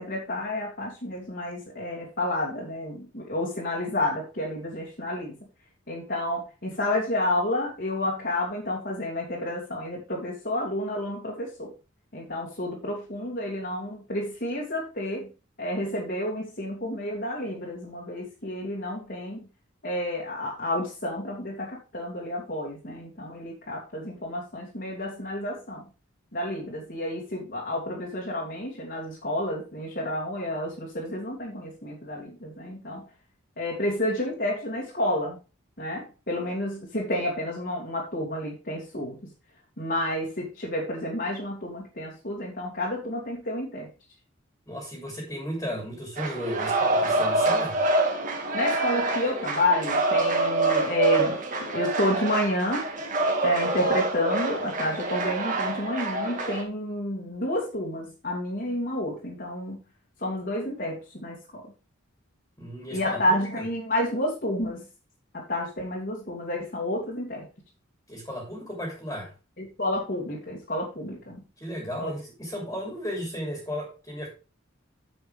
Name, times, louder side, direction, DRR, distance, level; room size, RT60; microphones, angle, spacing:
voice 1, 0.0-5.3 5.9-11.7 12.1-15.3 15.6-19.4 19.8-25.8 26.3-33.0 33.6-35.4 35.8-39.2 39.8-43.9 48.5-51.4 51.7-52.9 53.4-59.8 60.2-61.6 62.9-64.9 65.3-67.5 69.6-71.4 72.0-72.1, left 1 dB, 45° left, -3 dB, 2.6 m, -30 dB
voice 2, 44.7-47.8 62.6-63.6 68.1-69.3 71.6-74.3, equal, 15° left, -1 dB, 3.0 m, -34 dB
sound 1, 46.2-56.6, right 2 dB, 40° right, 2.0 m, -26 dB
9.3 x 7.8 x 3.5 m, 0.32 s
head